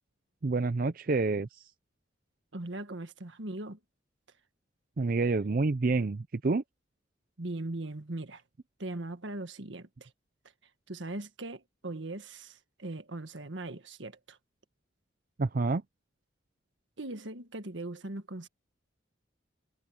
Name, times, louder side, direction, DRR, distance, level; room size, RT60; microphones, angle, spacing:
voice 1, 0.4-1.6 5.0-6.6 15.4-15.8, right 3 dB, 45° right, 0.5 m, -28 dB
voice 2, 2.5-3.8 7.4-8.4 8.8-10.1 10.9-14.4 17.0-18.5, right 2 dB, 75° right, 1.6 m, -39 dB
head